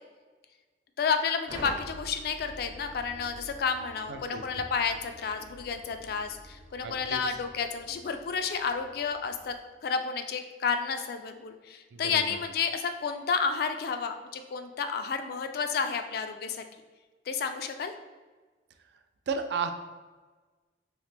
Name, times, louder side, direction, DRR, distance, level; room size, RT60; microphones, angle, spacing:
voice 1, 1.0-9.5 9.8-16.6 17.3-17.9, left 5 dB, 55° left, 7 dB, 0.3 m, -31 dB
sound 1, 1.5-9.6, equal, 85° right, 0.9 m, -47 dB
voice 2, 4.1-4.4 6.8-7.2 11.9-12.2 19.3-19.7, right 5 dB, 65° right, 8 dB, 0.3 m, -33 dB
3.1 x 2.8 x 3.2 m, 1.3 s
head